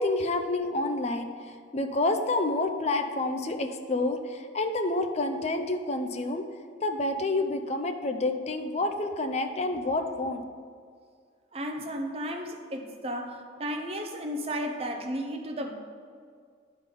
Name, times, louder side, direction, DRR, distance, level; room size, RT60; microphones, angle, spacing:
voice 1, 0.0-6.4 6.8-10.4, left 2 dB, 35° left, 6 dB, 0.5 m, -28 dB
voice 2, 11.5-15.8, equal, 30° right, 3 dB, 0.7 m, -34 dB
10.5 x 3.9 x 5.2 m, 2.1 s
head